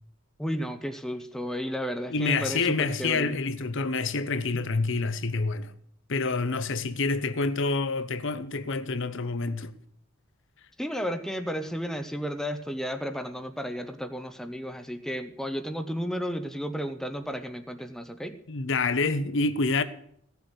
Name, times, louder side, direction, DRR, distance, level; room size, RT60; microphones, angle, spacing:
voice 1, 0.4-3.3 10.8-18.3, equal, ahead, 0.7 m, -33 dB
voice 2, 2.1-5.7 6.1-9.7 18.5-19.8, left 3 dB, 60° left, 0.9 m, -27 dB
15.5 x 7.1 x 8.0 m
head